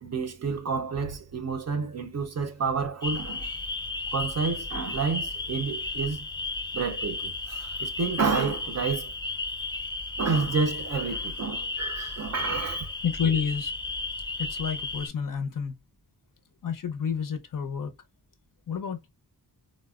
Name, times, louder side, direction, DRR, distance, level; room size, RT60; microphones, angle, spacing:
voice 1, 0.0-3.6 4.1-6.3 6.7-9.1 10.2-12.9, right 5 dB, 45° right, 0.5 m, -29 dB
sound 1, 3.0-15.1, left 3 dB, 15° left, 0.3 m, -34 dB
voice 2, 13.0-13.7 14.4-15.7 16.6-17.9 18.7-19.1, left 7 dB, 60° left, 0.6 m, -29 dB
4.1 x 2.1 x 2.3 m
wide cardioid pair, 140°, 37 cm